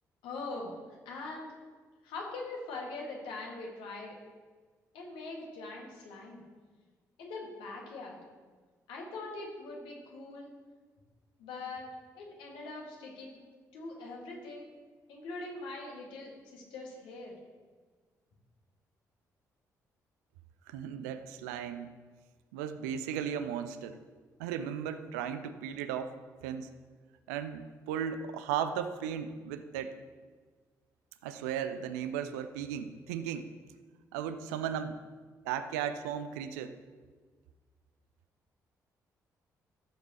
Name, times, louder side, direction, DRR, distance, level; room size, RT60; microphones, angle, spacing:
voice 1, 0.2-1.5 2.0-4.1 4.9-6.4 7.2-8.2 8.9-10.5 11.4-11.9 12.1-13.4 13.7-14.7 15.1-17.4, left 3 dB, 65° left, -1 dB, 1.9 m, -42 dB
voice 2, 20.7-21.9 22.5-24.0 24.4-26.1 26.4-26.7 27.3-30.0 31.2-33.5 34.1-35.0 35.5-36.8, right 8 dB, 70° right, 10 dB, 0.5 m, -36 dB
14.5 x 7.3 x 3.0 m, 1.5 s
figure-of-eight pair, 40°, 9 cm